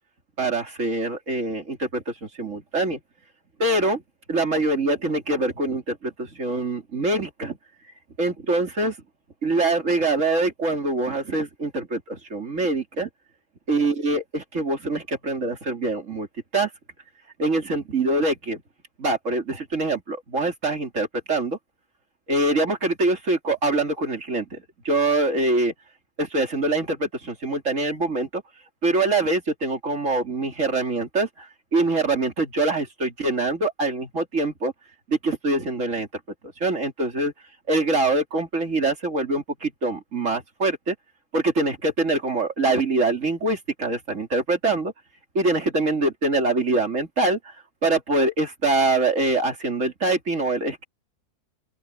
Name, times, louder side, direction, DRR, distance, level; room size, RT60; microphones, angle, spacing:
voice 1, 0.4-3.0 3.6-4.0 4.3-7.6 8.2-8.9 9.4-13.1 13.7-16.3 16.5-16.7 17.4-18.6 19.0-21.6 22.3-24.6 24.8-25.7 26.2-28.4 28.8-31.3 31.7-34.7 35.1-36.1 36.6-37.3 37.7-40.9 41.3-44.9 45.3-47.4 47.8-50.8, right 2 dB, 50° right, 3.1 m, -24 dB
open air
omnidirectional pair, 1.7 m